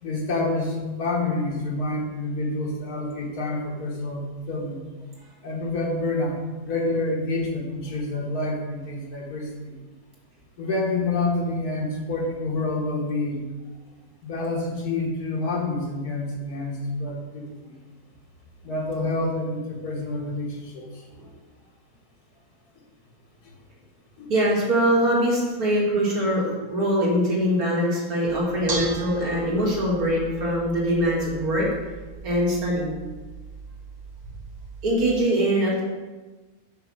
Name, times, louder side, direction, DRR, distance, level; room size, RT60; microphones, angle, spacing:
voice 1, 0.0-4.8 5.4-9.7 10.6-13.5 14.2-17.7 18.6-21.0 24.2-24.3, left 2 dB, 90° left, -1 dB, 1.8 m, -28 dB
voice 2, 24.3-31.7 32.2-32.9 34.8-35.8, equal, 75° right, -4 dB, 2.2 m, -23 dB
Bell / Dishes pots and pans, 28.3-34.9, right 3 dB, 35° right, 0.7 m, -38 dB
5.8 x 4.1 x 6.1 m, 1.3 s
omnidirectional pair, 1.6 m